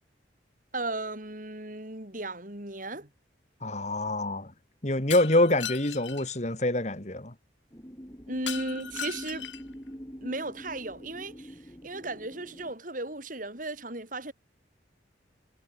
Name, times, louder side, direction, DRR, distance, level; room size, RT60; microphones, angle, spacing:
voice 1, 0.7-3.1 8.3-9.5 10.2-14.3, right 2 dB, 45° right, 6.0 m, -36 dB
voice 2, 3.6-4.5 4.8-7.3, left 1 dB, 40° left, 2.4 m, -26 dB
Shatter, 5.1-6.3 8.5-9.7, left 9 dB, 85° left, 4.2 m, -37 dB
sound 1, 7.7-12.7, equal, 20° left, 4.5 m, -45 dB
head